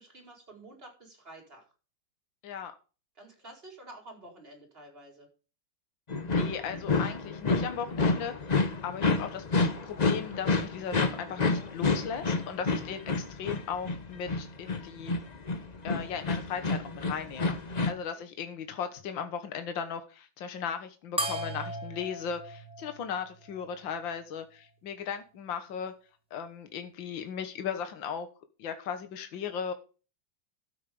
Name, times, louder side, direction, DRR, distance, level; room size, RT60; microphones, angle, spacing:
voice 1, 0.0-1.7 3.2-5.3 12.8-13.1 18.1-18.2, right 1 dB, 30° right, 2 dB, 5.0 m, -50 dB
sound 1, 6.1-17.9, left 3 dB, 30° left, 0.8 m, -29 dB
voice 2, 6.2-8.6 8.8-15.1 15.8-17.6 17.9-25.9 26.3-28.3 28.6-29.7, left 7 dB, 75° left, 8 dB, 2.0 m, -37 dB
sound 2, 21.2-24.0, right 1 dB, 5° right, 2.2 m, -37 dB
12.5 x 8.4 x 5.4 m, 0.34 s
omnidirectional pair, 2.1 m